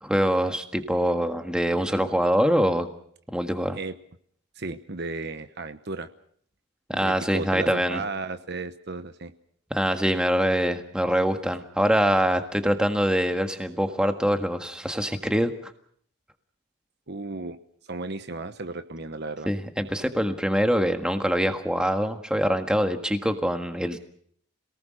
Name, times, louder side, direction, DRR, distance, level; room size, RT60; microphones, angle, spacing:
voice 1, 0.0-2.9 3.3-3.8 6.9-8.0 9.7-15.7 19.5-24.0, equal, 5° right, 6 dB, 1.6 m, -24 dB
voice 2, 4.6-6.1 7.0-9.3 17.1-17.6 17.9-19.5, right 3 dB, 50° right, 10 dB, 1.0 m, -34 dB
27.0 x 19.0 x 6.4 m, 0.62 s
head